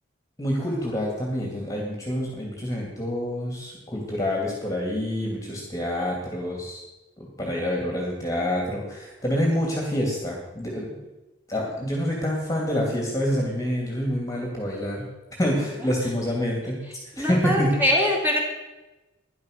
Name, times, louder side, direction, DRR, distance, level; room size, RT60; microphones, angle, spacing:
voice 1, 0.4-6.8 7.2-10.9 11.5-15.1 15.4-16.8 17.2-17.7, equal, 15° left, -1 dB, 2.5 m, -27 dB
voice 2, 15.6-15.9 17.2-18.4, left 1 dB, 10° right, -3 dB, 3.1 m, -23 dB
12.5 x 10.5 x 6.6 m, 1.1 s
head